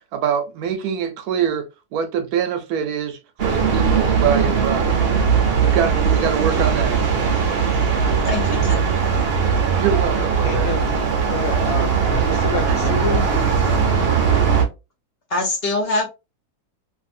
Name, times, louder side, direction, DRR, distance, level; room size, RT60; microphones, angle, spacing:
voice 1, 0.1-5.0 5.6-7.1 9.7-10.8, right 7 dB, 75° right, 1.1 m, -24 dB
sound 1, 3.4-14.7, right 6 dB, 55° right, 0.7 m, -19 dB
voice 2, 8.3-9.0 15.3-16.0, left 2 dB, 45° left, 0.9 m, -23 dB
voice 3, 10.4-10.9 11.3-13.3 13.6-14.0, left 5 dB, 70° left, 1.0 m, -29 dB
2.7 x 2.6 x 2.5 m
omnidirectional pair, 1.7 m